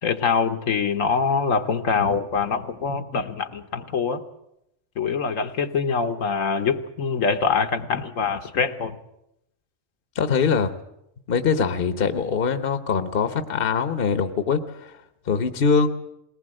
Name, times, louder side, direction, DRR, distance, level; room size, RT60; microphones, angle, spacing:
voice 1, 0.0-4.2 5.0-9.0, left 5 dB, 80° left, 7 dB, 1.5 m, -24 dB
voice 2, 10.1-10.7 11.3-15.0 15.3-15.9, left 5 dB, 50° left, 10 dB, 1.0 m, -22 dB
21.0 x 18.5 x 7.7 m, 0.82 s
omnidirectional pair, 1.3 m